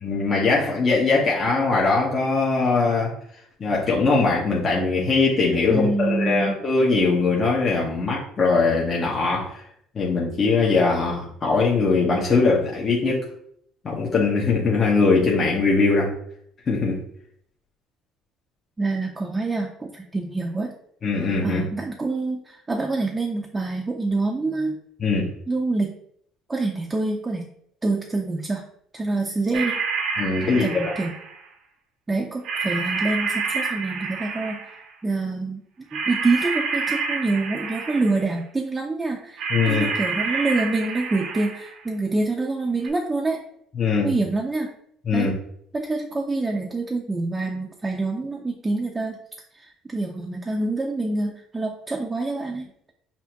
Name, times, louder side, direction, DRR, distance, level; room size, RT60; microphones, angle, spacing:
voice 1, 0.0-3.1 3.6-9.6 9.9-13.2 13.8-16.1 16.7-17.0 21.0-21.6 25.0-25.3 30.2-31.0 39.5-39.9 43.7-44.1 45.0-45.3, left 4 dB, 40° left, -4 dB, 1.0 m, -21 dB
voice 2, 5.7-6.5 18.8-20.7 21.4-24.8 25.5-25.9 26.5-27.5 27.8-28.6 28.9-29.8 30.4-31.1 32.1-34.7 35.0-35.6 35.9-43.4 44.0-44.7 45.1-45.3 45.7-49.2 49.5-52.9, right 3 dB, 20° right, 1 dB, 0.6 m, -26 dB
sound 1, 29.5-31.4 32.4-34.9 35.9-38.3 39.4-41.8 42.8-42.9, right 5 dB, 65° right, 0.7 m, -28 dB
5.6 x 2.1 x 2.9 m, 0.68 s
hypercardioid pair, 65°, 0 cm